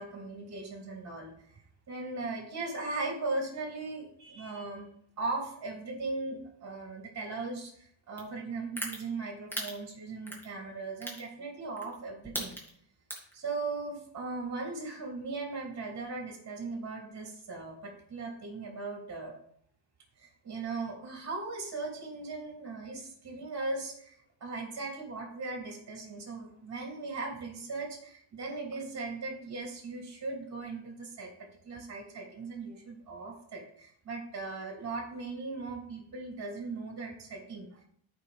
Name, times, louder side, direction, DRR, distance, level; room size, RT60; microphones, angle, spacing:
voice 1, 0.0-1.6 1.9-4.9 5.2-12.5 13.3-19.3 20.2-31.3 31.6-37.8, right 3 dB, 35° right, 0 dB, 2.8 m, -38 dB
sound 1, 8.2-8.3 8.8-9.0 9.5-9.7 10.3-10.5 11.0-11.2 11.8-11.9 12.2-12.7 13.1-13.3, right 1 dB, 5° left, 2.3 m, -35 dB
13.5 x 5.3 x 3.4 m, 0.64 s
cardioid pair, 140°, 45 cm